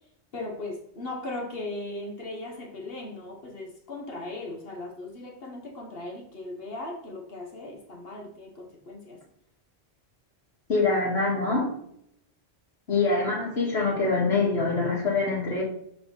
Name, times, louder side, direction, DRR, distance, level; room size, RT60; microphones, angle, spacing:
voice 1, 0.3-9.2, left 2 dB, 65° left, 2 dB, 1.4 m, -38 dB
voice 2, 10.7-11.7 12.9-15.6, left 3 dB, 80° left, -4 dB, 2.2 m, -24 dB
7.2 x 4.3 x 4.0 m, 0.71 s
omnidirectional pair, 1.1 m